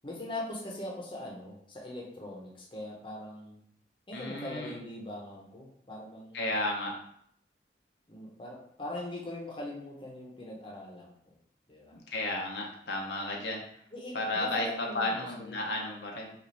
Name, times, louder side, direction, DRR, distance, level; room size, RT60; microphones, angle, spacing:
voice 1, 0.0-3.6 4.1-6.5 8.1-11.4 11.7-11.9 13.9-15.6, left 1 dB, 30° left, -2 dB, 0.8 m, -41 dB
voice 2, 4.1-4.7 6.3-6.9 11.9-13.6 14.1-16.3, left 2 dB, 70° left, 0 dB, 0.7 m, -33 dB
4.9 x 2.6 x 3.2 m, 0.67 s
head